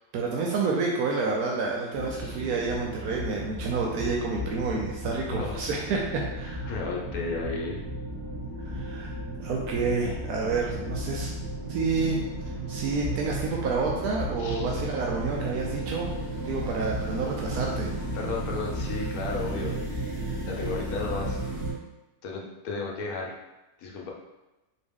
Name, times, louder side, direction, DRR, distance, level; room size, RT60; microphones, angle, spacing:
voice 1, 0.1-6.7 8.7-11.3 11.7-12.2 12.7-16.1 16.4-17.9, right 4 dB, 80° right, -1 dB, 1.1 m, -29 dB
sound 1, 1.9-21.7, right 1 dB, 45° right, 1.9 m, -34 dB
voice 2, 6.4-7.8 14.4-14.7 18.1-19.8 20.4-21.4 22.2-23.3 23.8-24.1, left 4 dB, 75° left, -1 dB, 1.1 m, -34 dB
4.1 x 2.9 x 3.5 m, 1.0 s
omnidirectional pair, 1.6 m